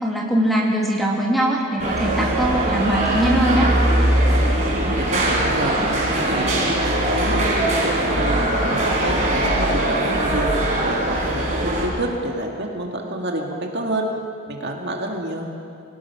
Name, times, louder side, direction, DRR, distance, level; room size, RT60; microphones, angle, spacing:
voice 1, 0.0-3.7, right 1 dB, ahead, -2 dB, 2.4 m, -21 dB
sound 1, 1.8-11.8, right 1 dB, 30° right, 4.9 m, -21 dB
voice 2, 4.8-5.8 6.3-6.5 6.9-8.4 8.7-10.5 10.8-14.1 14.5-15.4, right 1 dB, 50° right, 1 dB, 1.9 m, -28 dB
24.0 x 18.0 x 6.0 m, 2.5 s
head